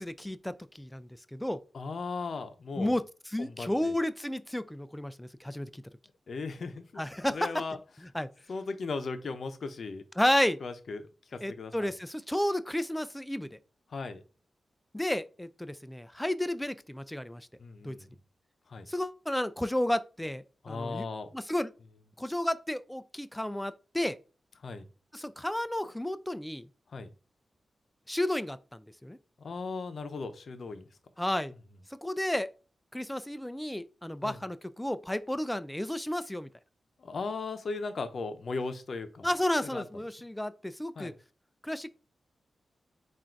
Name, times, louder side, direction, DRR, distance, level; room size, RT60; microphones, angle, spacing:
voice 1, 0.0-1.6 2.8-3.0 3.3-5.8 7.0-7.5 8.1-8.3 10.2-10.6 11.4-13.6 14.9-17.5 17.8-18.0 18.9-21.1 21.3-21.7 22.2-24.2 25.1-26.7 28.1-29.2 31.2-31.5 31.9-32.5 32.9-36.5 39.2-41.1 41.6-41.9, left 1 dB, 10° left, 0.4 m, -32 dB
voice 2, 1.7-3.0 3.4-3.9 6.3-7.8 8.5-10.0 10.6-11.9 13.9-14.2 17.6-18.1 18.7-18.9 20.6-21.3 24.6-24.9 26.9-27.1 29.4-30.9 34.2-34.4 37.0-39.3 39.6-39.8 41.0-41.1, left 4 dB, 65° left, 0.7 m, -37 dB
3.7 x 2.5 x 4.5 m
cardioid pair, 55°, 0 cm